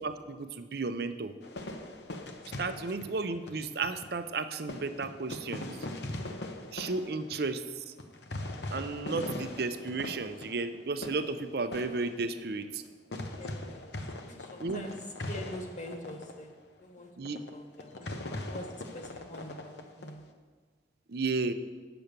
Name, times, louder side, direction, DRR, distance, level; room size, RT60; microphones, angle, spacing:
voice 1, 0.0-1.3 2.6-5.7 6.7-7.9 8.7-12.8 14.6-14.8 17.2-17.4 21.1-21.5, right 3 dB, 60° right, 10 dB, 0.6 m, -33 dB
sound 1, 1.4-4.2 4.7-12.9 13.1-16.4 16.8-16.9 17.3-17.5 17.8-20.1, left 1 dB, 70° left, 0.9 m, -41 dB
voice 2, 13.4-13.9 14.2-16.5 16.8-20.2, left 1 dB, 40° left, 3 dB, 1.4 m, -45 dB
8.9 x 7.0 x 6.7 m, 1.5 s
head